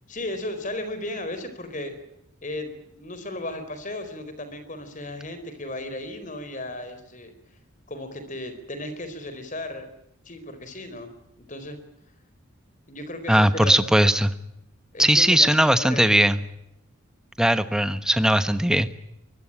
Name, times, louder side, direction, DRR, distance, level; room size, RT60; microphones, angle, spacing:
voice 1, 0.1-2.0 2.4-7.3 7.9-9.9 10.2-11.8 12.9-13.8 14.9-16.0, left 1 dB, 35° left, 10 dB, 4.3 m, -35 dB
voice 2, 13.3-14.3 15.0-16.4 17.4-18.9, right 1 dB, 5° right, 11 dB, 1.1 m, -19 dB
24.0 x 20.5 x 8.8 m, 0.81 s
head